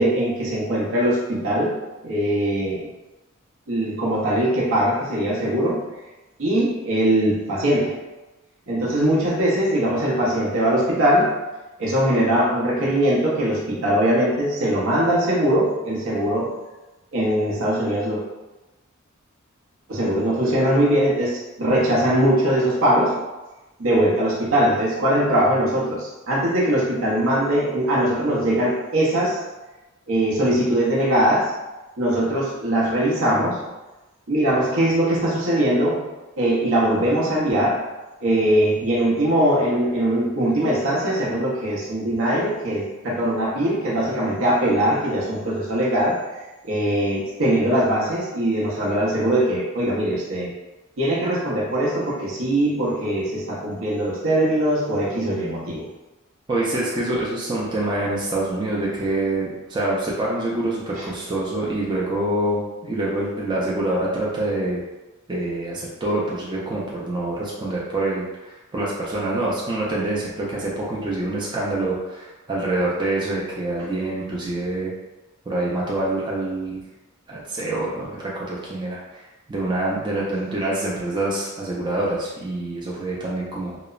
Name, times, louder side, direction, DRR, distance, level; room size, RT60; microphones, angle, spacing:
voice 1, 0.0-1.8 2.0-2.9 3.7-5.9 6.4-8.0 8.7-11.4 11.8-16.6 17.1-18.2 19.9-23.2 23.8-29.4 30.1-31.5 32.0-33.6 34.3-36.1 36.4-37.9 38.2-46.2 46.6-50.5 51.0-55.9 60.9-61.1, right 1 dB, 65° right, -5 dB, 0.6 m, -21 dB
voice 2, 56.5-64.8 65.3-74.9 75.5-76.8 77.3-83.8, right 2 dB, 20° right, -6 dB, 0.4 m, -26 dB
2.9 x 2.0 x 2.3 m, 1.1 s
head